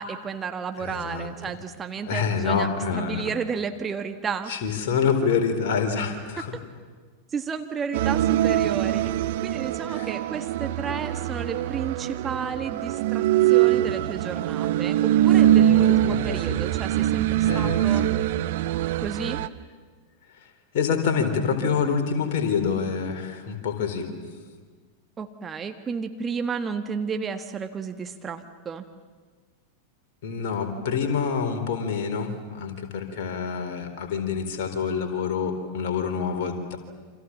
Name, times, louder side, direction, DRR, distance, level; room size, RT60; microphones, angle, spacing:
voice 1, 0.0-2.7 2.9-4.5 7.3-9.0 9.4-18.0 19.0-19.4 25.2-28.8, right 6 dB, 20° right, 7 dB, 1.5 m, -32 dB
voice 2, 0.8-1.3 2.1-3.3 4.5-6.6 9.9-10.1 15.4-16.6 17.4-17.8 20.7-24.1 30.2-36.8, left 6 dB, 50° left, 5 dB, 4.0 m, -27 dB
sound 1, 7.9-19.5, right 12 dB, 50° right, 0.8 m, -23 dB
28.5 x 26.5 x 7.4 m, 1.5 s
figure-of-eight pair, 90°, 0 cm